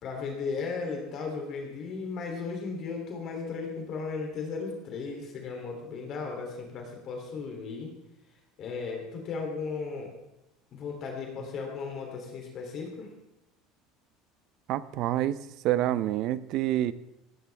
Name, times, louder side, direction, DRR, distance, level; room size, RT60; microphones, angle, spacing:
voice 1, 0.0-7.9 8.6-10.1 10.7-13.1, left 4 dB, 40° left, 2 dB, 3.1 m, -36 dB
voice 2, 14.7-15.4 15.6-16.9, right 13 dB, 50° right, 15 dB, 0.7 m, -27 dB
17.5 x 17.5 x 3.5 m, 0.89 s
cardioid pair, 165°, 0 cm